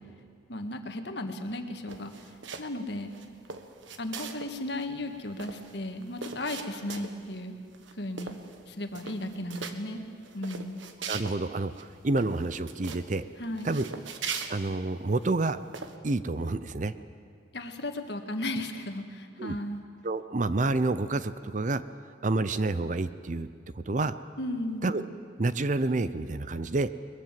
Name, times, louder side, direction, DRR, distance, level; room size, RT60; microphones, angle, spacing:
voice 1, 0.5-2.1 2.6-3.1 4.0-7.6 8.0-8.4 8.7-10.0 10.3-10.8 13.4-13.7 17.5-19.8 24.4-25.0, left 1 dB, 55° left, 6 dB, 1.7 m, -35 dB
sound 1, 1.9-2.8 3.1-4.5 4.8-4.9 5.1-7.3 7.7-8.6 8.9-9.8 10.2-11.4 11.7-11.8 12.2-13.1 13.6-15.3 15.7-15.9, right 5 dB, 75° right, 1.4 m, -40 dB
voice 2, 11.1-13.2 13.6-13.9 14.5-15.6 16.0-16.9 19.4-19.6 20.0-21.8 22.2-23.5 23.7-24.2 24.8-25.0 25.4-26.9, right 2 dB, 40° right, 13 dB, 0.6 m, -28 dB
21.5 x 21.0 x 7.5 m, 2.3 s
head